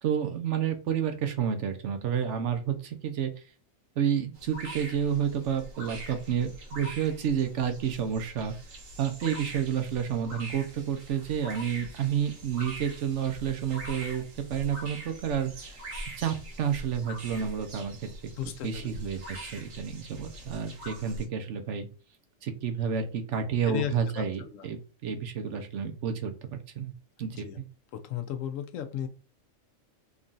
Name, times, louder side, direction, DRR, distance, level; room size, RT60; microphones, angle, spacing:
voice 1, 0.0-3.4 4.0-8.5 9.0-15.9 16.2-18.2 18.6-21.9 22.4-26.9 27.2-27.7, right 8 dB, 70° right, 7 dB, 1.0 m, -30 dB
sound 1, 4.3-21.2, right 1 dB, 85° right, 1.5 m, -43 dB
voice 2, 18.4-18.9 23.7-24.7 27.3-27.6 27.9-29.1, left 10 dB, 85° left, 7 dB, 1.0 m, -35 dB
3.7 x 2.4 x 3.8 m, 0.33 s
omnidirectional pair, 1.3 m